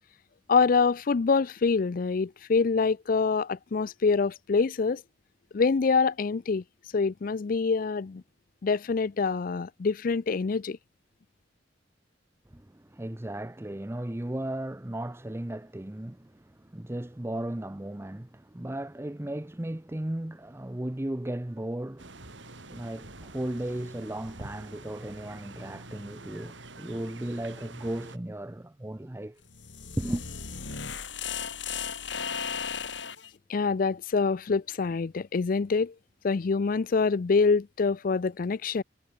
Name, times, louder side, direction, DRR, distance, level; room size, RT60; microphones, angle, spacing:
voice 1, 0.5-5.0 5.5-6.6 6.9-8.2 8.6-10.8 33.5-35.9 36.2-38.8, left 4 dB, 50° left, 0.4 m, -25 dB
voice 2, 12.5-22.3 22.7-29.4 30.0-30.3, right 1 dB, 15° right, 0.6 m, -35 dB
sound 1, 22.0-28.2, right 2 dB, 85° right, 5.6 m, -46 dB
sound 2, 29.4-33.3, left 7 dB, 80° left, 3.7 m, -35 dB
head